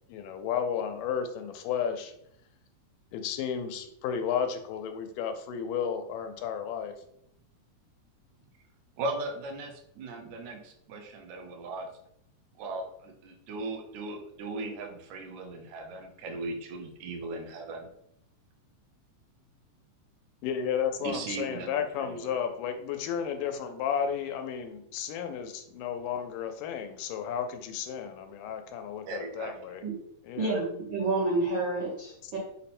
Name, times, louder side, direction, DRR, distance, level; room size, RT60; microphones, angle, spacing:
voice 1, 0.1-2.1 3.1-7.0 20.4-29.8 30.2-30.6 32.2-32.3, left 8 dB, 85° left, 7 dB, 2.2 m, -33 dB
voice 2, 9.0-11.9 12.6-17.9 21.0-22.5 29.1-29.5, right 2 dB, 75° right, 3 dB, 1.8 m, -38 dB
voice 3, 30.4-32.4, right 2 dB, 90° right, -6 dB, 1.0 m, -29 dB
5.6 x 2.1 x 4.2 m, 0.76 s
omnidirectional pair, 3.8 m